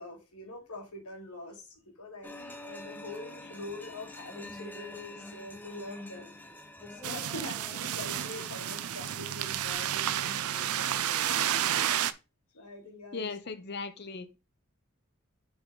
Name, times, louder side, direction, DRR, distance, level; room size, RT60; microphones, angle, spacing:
voice 1, 0.0-6.4 6.8-11.9 12.5-13.3, left 1 dB, 90° left, 2.4 m, -44 dB
sound 1, 2.2-9.7, left 2 dB, 10° left, 0.8 m, -47 dB
sound 2, 7.0-12.1, right 10 dB, 80° right, 0.5 m, -31 dB
voice 2, 13.1-14.3, left 4 dB, 50° left, 0.8 m, -37 dB
6.9 x 4.8 x 3.9 m
head